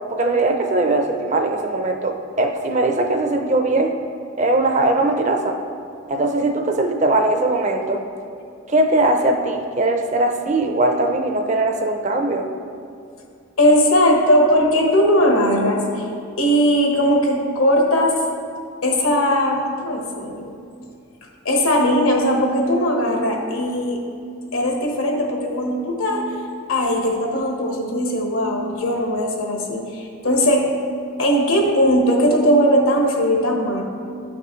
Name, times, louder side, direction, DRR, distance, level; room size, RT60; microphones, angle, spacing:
voice 1, 0.1-3.9 4.4-5.6 6.1-8.0 8.7-12.5, right 2 dB, 35° right, 4 dB, 0.5 m, -20 dB
voice 2, 13.6-16.1 16.4-18.1 18.8-20.6 21.4-24.0 24.5-26.3 26.7-30.7 31.2-33.8, equal, 80° left, 0 dB, 1.3 m, -19 dB
11.5 x 5.9 x 3.1 m, 2.5 s
head